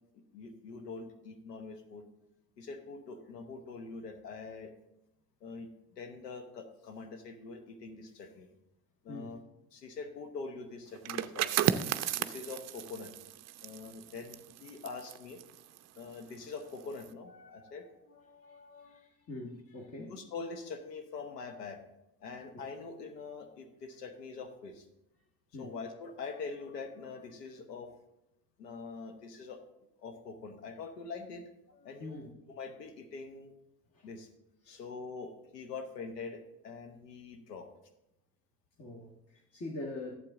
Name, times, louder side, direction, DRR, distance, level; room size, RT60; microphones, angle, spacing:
voice 1, 0.1-2.0 2.6-4.7 5.4-5.7 6.0-8.5 9.0-9.4 9.7-11.8 12.2-13.1 13.6-15.4 16.0-19.0 20.0-21.8 22.2-24.8 25.6-27.9 28.6-29.6 30.0-33.5 34.0-34.3 34.7-37.7, left 4 dB, 85° left, 8 dB, 1.1 m, -44 dB
sound 1, 11.0-16.5 16.8-17.1, right 11 dB, 35° right, 0.5 m, -34 dB
voice 2, 18.5-20.1 25.5-25.7 32.0-32.3 33.9-34.1 34.6-34.8 38.8-40.1, left 2 dB, 30° left, 0 dB, 1.5 m, -44 dB
11.5 x 7.7 x 3.7 m, 0.89 s
hypercardioid pair, 65°, 47 cm